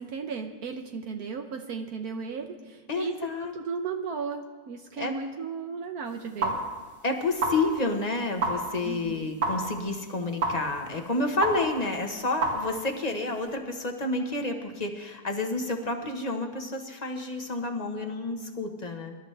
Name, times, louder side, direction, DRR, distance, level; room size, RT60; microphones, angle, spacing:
voice 1, 0.0-6.6 8.8-9.3, right 5 dB, 70° right, 5 dB, 1.3 m, -35 dB
voice 2, 2.9-3.5 5.0-5.1 7.0-19.2, left 2 dB, 25° left, 4 dB, 1.2 m, -30 dB
sound 1, 6.0-13.5, right 2 dB, 85° right, 4.1 m, -33 dB
25.0 x 12.5 x 3.4 m, 1.4 s
omnidirectional pair, 1.7 m